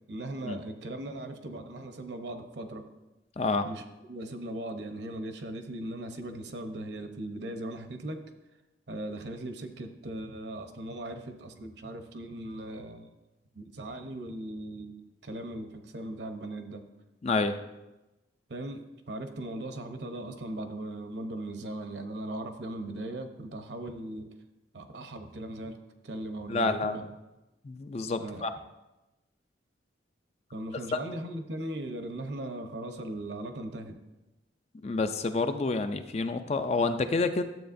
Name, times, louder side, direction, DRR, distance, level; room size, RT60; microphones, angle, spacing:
voice 1, 0.1-2.8 3.6-3.8 4.1-8.2 8.9-13.1 13.5-16.8 18.5-24.3 24.7-27.0 28.2-28.5 30.5-34.0, right 1 dB, 65° right, 6 dB, 0.8 m, -38 dB
voice 2, 17.2-17.5 26.5-27.0 27.6-28.5 30.9-31.0 34.8-37.4, left 3 dB, 35° left, 8 dB, 0.4 m, -28 dB
12.0 x 7.7 x 2.6 m, 1.0 s
head